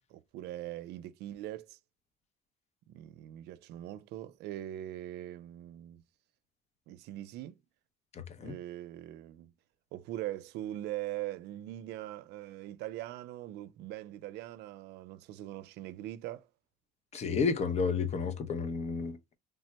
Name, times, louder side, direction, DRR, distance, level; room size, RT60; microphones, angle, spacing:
voice 1, 0.1-1.8 2.9-6.0 6.9-7.6 8.4-9.5 9.9-16.5, right 14 dB, 80° right, 0.4 m, -41 dB
voice 2, 8.1-8.5 17.1-19.2, left 5 dB, 40° left, 0.6 m, -31 dB
3.3 x 2.1 x 2.7 m
cardioid pair, 110°, 17 cm